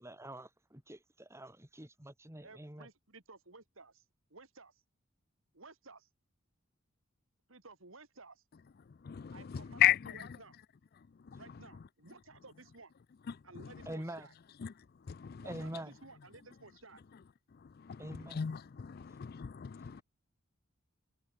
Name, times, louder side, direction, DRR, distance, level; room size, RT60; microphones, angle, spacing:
voice 1, 0.0-2.9 13.9-14.3 15.5-15.9 18.0-18.4 19.9-20.0, right 1 dB, 15° right, 2.1 m, -45 dB
voice 2, 2.4-4.0 4.3-4.8 5.5-6.1 7.5-8.4 9.3-10.6 11.4-12.9 13.4-14.3 15.4-17.0, right 3 dB, 80° right, 3.6 m, -55 dB
voice 3, 9.0-10.1 11.3-11.4 14.6-14.7 15.1-15.4 17.8-18.0 18.3-20.0, left 11 dB, 50° left, 0.4 m, -33 dB
head